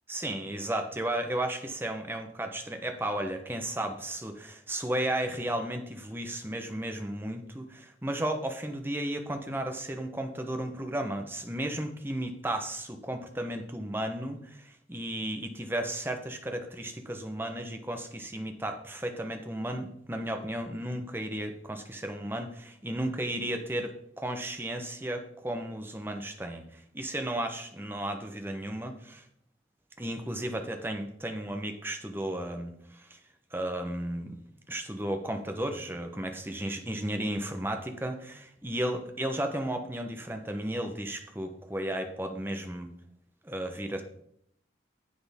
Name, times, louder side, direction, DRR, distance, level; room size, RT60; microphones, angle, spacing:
voice 1, 0.1-29.2 30.0-33.2 33.5-34.4 34.7-42.9 43.4-44.0, right 1 dB, 10° right, 5 dB, 0.9 m, -34 dB
10.0 x 7.8 x 3.6 m, 0.71 s
head